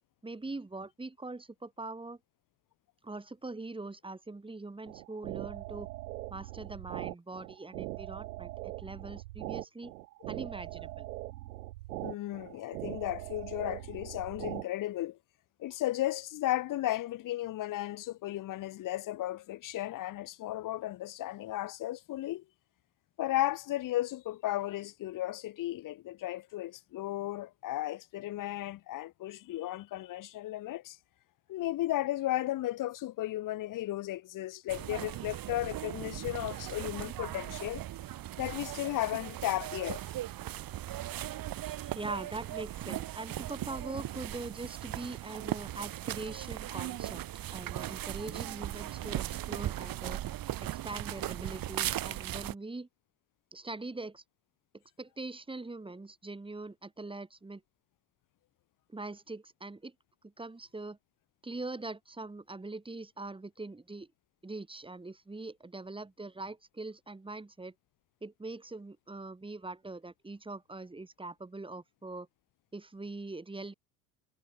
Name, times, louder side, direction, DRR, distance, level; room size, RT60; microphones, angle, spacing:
voice 1, 0.2-2.2 3.0-5.9 6.3-9.9 10.3-11.1 41.9-47.2 47.5-50.2 50.6-52.9 53.5-54.2 54.7-57.6 58.9-59.9 60.2-61.0 61.4-64.1 64.4-67.7 68.2-72.3 72.7-73.7, right 2 dB, 10° right, 2.2 m, -42 dB
sound 1, 4.9-14.6, right 18 dB, 80° right, 2.9 m, -41 dB
voice 2, 12.0-15.2 15.6-22.4 23.2-31.0 31.5-37.8 38.4-40.0, left 15 dB, 45° left, 1.1 m, -34 dB
sound 2, 34.7-52.5, right 13 dB, 45° right, 2.4 m, -38 dB
hypercardioid pair, 85°, 46 cm